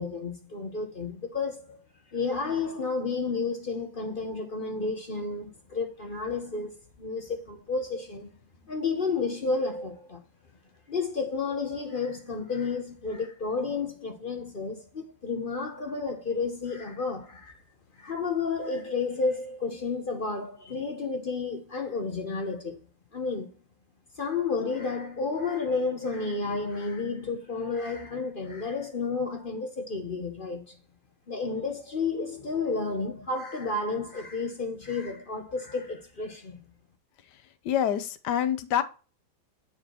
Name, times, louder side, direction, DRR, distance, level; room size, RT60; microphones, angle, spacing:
voice 1, 0.0-1.8 2.1-8.3 8.7-10.2 10.9-17.6 18.0-22.8 23.1-23.5 24.2-30.8 31.3-36.7, left 4 dB, 40° left, 0.8 m, -31 dB
voice 2, 37.6-38.8, left 10 dB, 70° left, 1.2 m, -26 dB
9.6 x 4.5 x 3.0 m
omnidirectional pair, 2.0 m